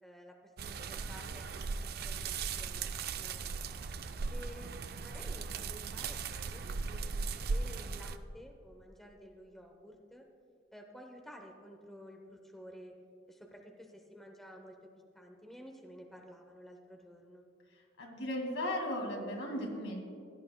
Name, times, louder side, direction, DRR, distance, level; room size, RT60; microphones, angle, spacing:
voice 1, 0.0-1.7 2.0-2.9 3.2-3.8 4.3-10.2 10.7-12.9 13.3-14.8 15.1-17.5, equal, ahead, 2 dB, 0.8 m, -52 dB
sound 1, 0.6-8.2, right 4 dB, 50° right, 0.4 m, -38 dB
voice 2, 18.0-20.0, left 1 dB, 90° left, 0 dB, 2.2 m, -36 dB
16.5 x 10.5 x 2.3 m, 2.5 s
head